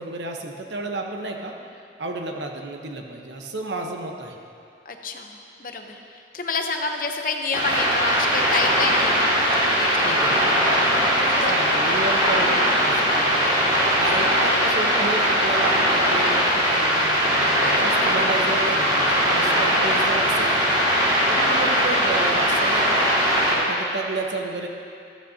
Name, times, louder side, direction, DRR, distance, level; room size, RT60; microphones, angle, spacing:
voice 1, 0.0-1.6 2.0-4.4 10.0-10.3 11.5-23.1 23.5-24.7, right 2 dB, 75° right, 2 dB, 1.0 m, -31 dB
voice 2, 4.9-11.5 12.4-12.6 17.6-18.1, left 4 dB, 50° left, 4 dB, 0.8 m, -30 dB
sound 1, 7.5-23.5, equal, 25° right, 2.2 m, -20 dB
13.5 x 13.0 x 2.8 m, 2.5 s
head